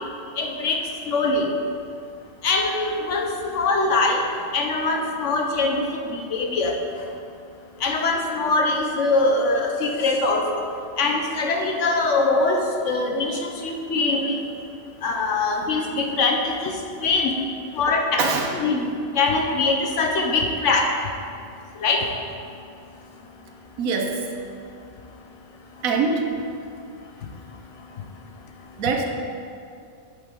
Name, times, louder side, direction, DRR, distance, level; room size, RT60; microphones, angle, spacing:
voice 1, 0.4-1.5 2.4-4.2 4.5-6.8 7.8-10.6 11.0-14.4 15.0-16.7 17.0-17.3 17.7-18.3 18.5-18.9 19.1-20.9 21.8-22.1, left 3 dB, 65° left, 1 dB, 1.1 m, -22 dB
voice 2, 17.9-18.5 23.8-24.2 25.8-26.3 28.8-29.0, right 5 dB, 80° right, 3 dB, 1.3 m, -24 dB
8.4 x 7.0 x 3.7 m, 2.5 s
omnidirectional pair, 1.4 m